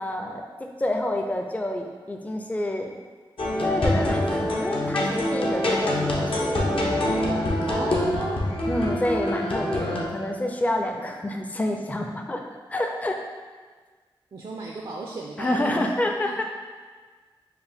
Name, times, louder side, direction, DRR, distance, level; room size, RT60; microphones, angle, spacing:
voice 1, 0.0-3.0 3.6-6.6 8.7-12.4 12.7-13.2 15.4-16.4, left 1 dB, 15° left, 3 dB, 0.4 m, -28 dB
sound 1, 3.4-10.1, left 1 dB, 65° left, 0.7 m, -25 dB
voice 2, 7.6-8.4 14.3-16.4, right 2 dB, 55° right, -1 dB, 0.4 m, -35 dB
4.6 x 2.2 x 3.4 m, 1.5 s
cardioid pair, 45°, 10 cm